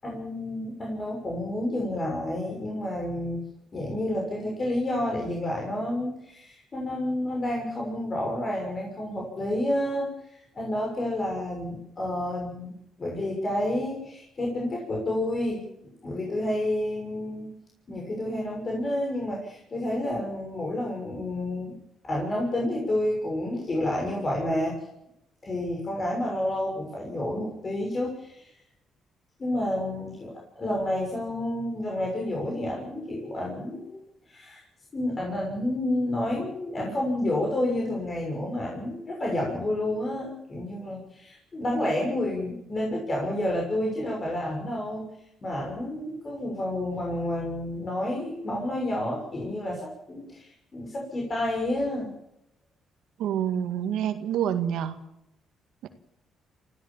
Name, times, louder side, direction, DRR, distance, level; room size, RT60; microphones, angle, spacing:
voice 1, 0.0-3.4 3.7-17.5 17.9-21.7 22.0-24.9 25.4-28.5 29.4-34.0 34.3-34.6 34.9-45.0 45.4-52.1, left 1 dB, 35° left, -1 dB, 6.5 m, -30 dB
voice 2, 53.2-55.0 55.8-55.9, right 9 dB, 85° right, 8 dB, 1.9 m, -27 dB
26.0 x 16.0 x 7.4 m, 0.81 s
cardioid pair, 90°, 0 cm